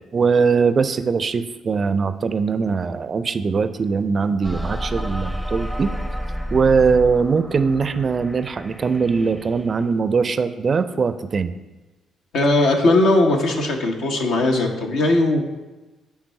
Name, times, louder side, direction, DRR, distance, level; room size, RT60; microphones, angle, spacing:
voice 1, 0.1-5.9 6.5-11.5, right 5 dB, 40° right, 12 dB, 0.4 m, -21 dB
sound 1, 4.4-9.9, equal, ahead, 0.6 m, -30 dB
voice 2, 12.3-15.4, left 2 dB, 65° left, 2 dB, 1.0 m, -18 dB
9.5 x 3.6 x 5.5 m, 1.1 s
figure-of-eight pair, 40°, 0 cm